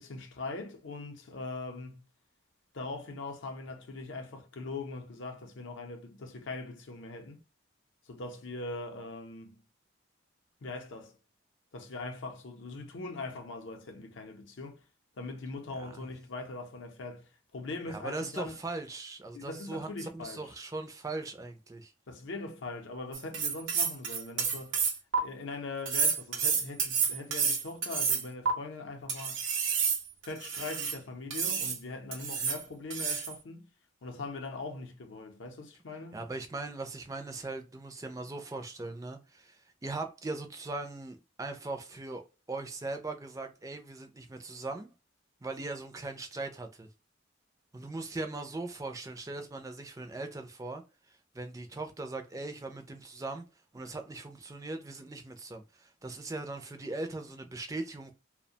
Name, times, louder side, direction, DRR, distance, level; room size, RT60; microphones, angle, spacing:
voice 1, 0.0-2.0 2.7-7.4 8.1-9.6 10.6-11.2 11.7-14.8 15.2-18.6 19.3-20.5 22.1-24.8 25.1-29.4 30.2-33.7 34.0-36.2, left 3 dB, 70° left, 0.5 m, -41 dB
voice 2, 17.9-21.9 36.1-42.2 42.5-44.9 45.4-46.9 47.7-50.8 51.1-53.4 53.7-58.1, right 2 dB, 15° right, 0.3 m, -39 dB
sound 1, 23.1-25.2 25.9-28.5 29.1-31.0 31.3-31.8 32.1-32.6 32.9-33.4, right 6 dB, 75° right, 0.6 m, -30 dB
2.3 x 2.1 x 2.7 m
head